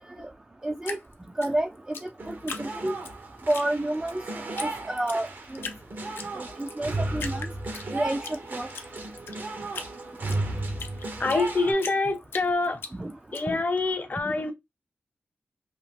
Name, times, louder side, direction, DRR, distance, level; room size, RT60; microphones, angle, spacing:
voice 1, 0.6-1.0 1.4-1.7 2.0-2.9 3.5-4.2 4.9-5.3 6.4-7.5 7.9-8.7 13.0-13.1 13.5-13.6 14.2-14.3, right 1 dB, 20° right, 0.4 m, -29 dB
Drip, 0.8-3.1 3.5-4.2 4.6-4.7 5.0-5.8 6.2-6.8 7.2-8.4 8.7-11.5 11.8-13.4, left 5 dB, 90° left, 0.5 m, -38 dB
sound 1, 2.2-11.7, right 2 dB, 65° right, 0.9 m, -34 dB
voice 2, 11.2-12.8 13.3-14.5, left 3 dB, 50° left, 0.7 m, -26 dB
2.8 x 2.0 x 3.3 m
cardioid pair, 55°, 4 cm